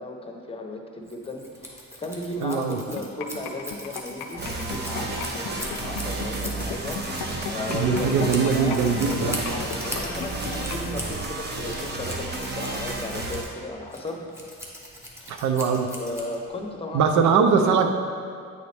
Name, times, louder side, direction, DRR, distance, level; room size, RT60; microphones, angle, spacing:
voice 1, 0.0-14.2 15.2-15.5 16.0-17.3, left 2 dB, 20° left, 2 dB, 0.8 m, -35 dB
Scissors, 1.0-16.7, equal, 10° right, 1.1 m, -40 dB
voice 2, 2.4-2.8 7.7-9.4 15.3-15.9 16.9-17.9, right 6 dB, 75° right, 6 dB, 0.6 m, -21 dB
sound 1, 3.0-10.9, left 7 dB, 80° left, 0.5 m, -35 dB
sound 2, 4.4-13.4, right 2 dB, 35° right, 0.9 m, -32 dB
8.5 x 3.9 x 3.4 m, 2.3 s
cardioid pair, 90°, 30 cm